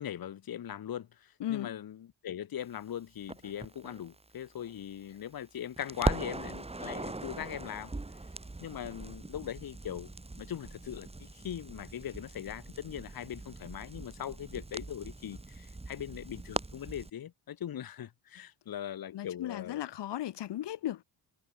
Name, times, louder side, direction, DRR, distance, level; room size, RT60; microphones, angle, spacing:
voice 1, 0.0-7.9 8.6-19.8, left 10 dB, 55° left, 1.5 m, -40 dB
voice 2, 1.4-1.7 19.1-21.0, left 12 dB, 70° left, 1.4 m, -36 dB
Crackle, 3.3-5.4 5.8-17.1, right 2 dB, 15° right, 2.1 m, -40 dB
cardioid pair, 105°, 43 cm